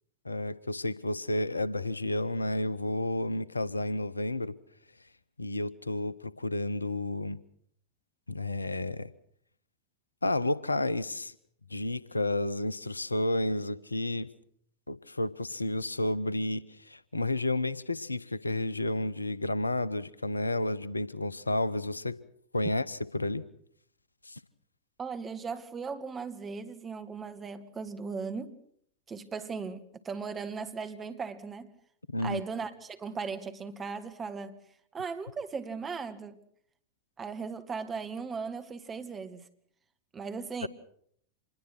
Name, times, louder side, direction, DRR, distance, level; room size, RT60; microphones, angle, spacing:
voice 1, 0.2-4.5 5.4-7.4 8.3-9.1 10.2-11.3 11.7-14.3 14.9-22.2 22.5-23.4 24.2-24.4 32.1-32.4 40.6-40.7, left 2 dB, 80° left, 0.9 m, -31 dB
voice 2, 25.0-28.6 29.1-31.7 32.2-34.6 34.9-36.4 37.2-39.5 40.1-40.7, right 5 dB, 20° right, 2.0 m, -37 dB
26.5 x 21.0 x 6.1 m
figure-of-eight pair, 90°, 0 cm